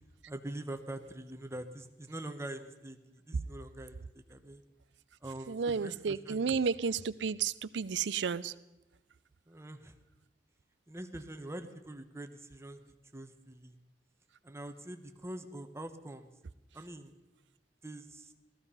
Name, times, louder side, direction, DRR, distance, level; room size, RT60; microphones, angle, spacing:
voice 1, 0.3-4.6 5.2-6.6 9.5-9.9 10.9-13.8 14.4-16.3 16.7-17.2 17.8-18.3, right 1 dB, 15° right, 7 dB, 1.1 m, -44 dB
voice 2, 5.5-8.5, right 5 dB, 90° right, 17 dB, 0.5 m, -32 dB
17.0 x 14.5 x 5.6 m, 1.0 s
head